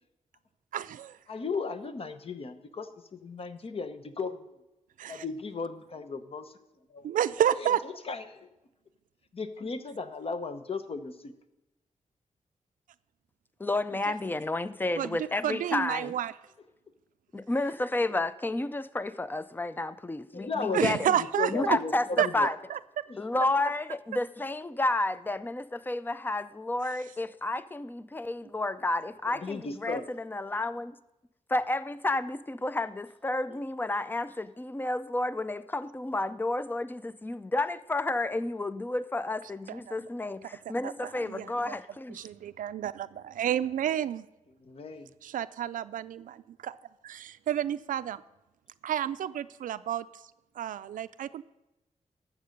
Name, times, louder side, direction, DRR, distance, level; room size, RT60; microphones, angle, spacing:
voice 1, 0.7-1.2 5.0-5.2 7.0-7.8 14.1-14.2 15.0-16.3 20.7-21.8 22.2-22.8 39.7-40.0 40.8-41.8 42.1-44.3 45.2-46.8 47.0-48.2 48.8-50.2 50.6-51.4, right 10 dB, 90° right, 0.4 m, -30 dB
voice 2, 1.3-4.6 5.1-6.6 6.9-7.1 7.6-8.5 9.3-11.3 20.3-22.5 23.1-23.2 29.3-30.1 44.6-45.1, left 4 dB, 45° left, 0.9 m, -36 dB
voice 3, 13.6-16.1 17.3-21.1 21.5-22.6 23.2-30.9 31.5-42.2, left 2 dB, 15° left, 0.4 m, -31 dB
12.0 x 7.3 x 5.2 m
wide cardioid pair, 95°, 13 cm